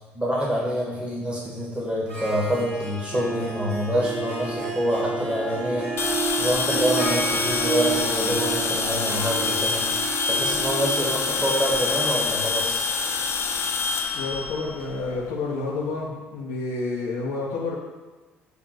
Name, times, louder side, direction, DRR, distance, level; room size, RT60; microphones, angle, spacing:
voice 1, 0.1-5.9 6.4-9.9 10.3-12.8, equal, 15° right, -4 dB, 2.3 m, -26 dB
Harp, 2.1-15.6, right 4 dB, 65° right, 2.4 m, -32 dB
sound 1, 6.0-15.2, left 4 dB, 45° left, 0.8 m, -26 dB
voice 2, 14.1-17.9, left 3 dB, 65° left, -4 dB, 1.1 m, -29 dB
8.2 x 3.5 x 6.4 m, 1.2 s
figure-of-eight pair, 50°, 6 cm